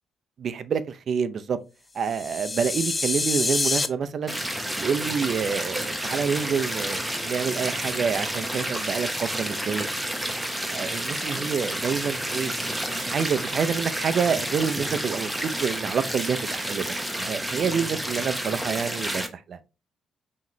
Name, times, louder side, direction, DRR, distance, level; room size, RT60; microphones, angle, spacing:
voice 1, 0.4-1.6 1.9-4.4 4.8-9.9 10.7-19.6, right 6 dB, 55° right, 0.5 m, -28 dB
sound 1, 2.0-3.9, left 3 dB, 25° left, 0.4 m, -26 dB
sound 2, 4.3-19.3, right 1 dB, 5° right, 0.8 m, -30 dB
5.7 x 3.1 x 2.7 m
cardioid pair, 90°, 0 cm